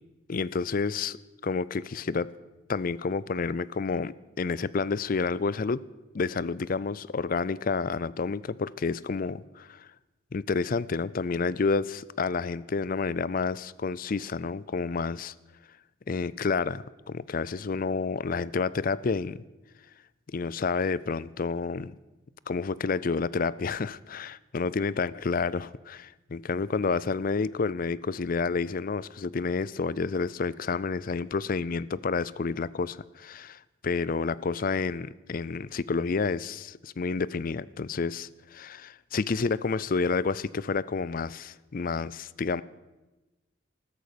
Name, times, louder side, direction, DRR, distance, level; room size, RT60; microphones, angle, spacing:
voice 1, 0.3-1.2 1.4-2.3 2.7-5.8 6.1-9.9 10.3-15.3 16.1-19.4 20.3-21.9 22.5-42.6, left 4 dB, 45° left, 0.5 m, -29 dB
14.5 x 13.0 x 6.7 m
head